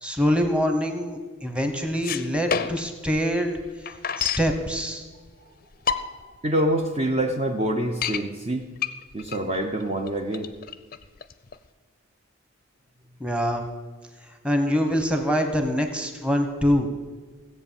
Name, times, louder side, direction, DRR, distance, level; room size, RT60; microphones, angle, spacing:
voice 1, 0.0-3.5 4.2-5.0 13.2-13.6 14.4-16.9, equal, 5° right, 5 dB, 1.1 m, -24 dB
sound 1, 1.9-3.0 3.3-3.4 3.6-4.5 5.3-5.4 5.7-6.4 6.8-6.9 7.2-7.3 7.7-8.2 8.8-11.7, left 7 dB, 45° left, 0.6 m, -29 dB
voice 2, 6.4-8.6 9.1-10.5, right 1 dB, 30° right, 3 dB, 0.7 m, -26 dB
16.0 x 8.0 x 7.1 m, 1.4 s
head